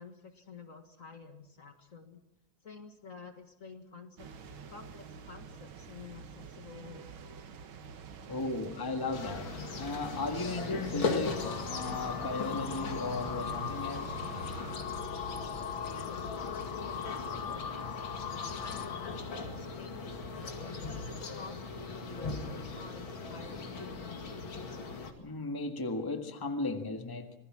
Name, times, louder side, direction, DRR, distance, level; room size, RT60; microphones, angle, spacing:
voice 1, 0.0-2.2 2.6-4.3 4.7-7.1 15.6-18.0 18.4-23.9, left 5 dB, 45° left, 1.9 m, -50 dB
sound 1, 4.2-14.7, right 5 dB, 90° right, 2.1 m, -46 dB
voice 2, 8.3-14.2 25.2-27.3, left 3 dB, 10° left, 1.5 m, -36 dB
sound 2, 9.1-25.1, left 4 dB, 85° left, 3.0 m, -39 dB
sound 3, 11.3-19.4, left 9 dB, 60° left, 1.6 m, -40 dB
26.5 x 19.5 x 6.2 m
omnidirectional pair, 2.1 m